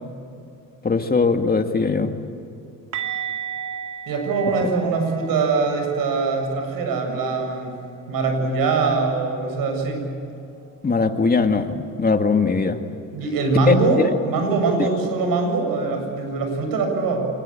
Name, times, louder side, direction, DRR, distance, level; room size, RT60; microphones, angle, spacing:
voice 1, 0.8-2.1 10.8-12.8 13.7-13.8 14.8-14.9, left 4 dB, 25° left, 6 dB, 2.1 m, -20 dB
sound 1, 2.9-8.7 9.0-9.2 9.5-9.7 12.9-13.0, right 8 dB, 55° right, 2.3 m, -36 dB
voice 2, 4.1-7.8 8.1-10.1 13.1-17.3, right 3 dB, 70° right, 4 dB, 7.4 m, -22 dB
26.0 x 21.0 x 8.9 m, 2.6 s
cardioid pair, 90°, 35 cm